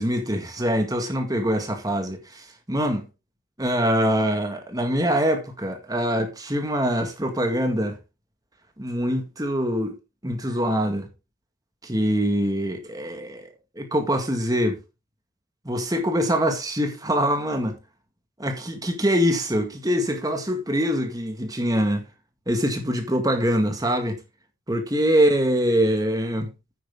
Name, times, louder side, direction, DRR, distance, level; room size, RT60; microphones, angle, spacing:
voice 1, 0.0-3.1 3.6-8.0 8.8-10.0 10.2-11.1 11.8-14.8 15.7-17.8 18.4-22.0 22.5-24.2 24.7-26.5, equal, 20° right, 1.9 m, -24 dB
9.4 x 8.6 x 3.7 m
head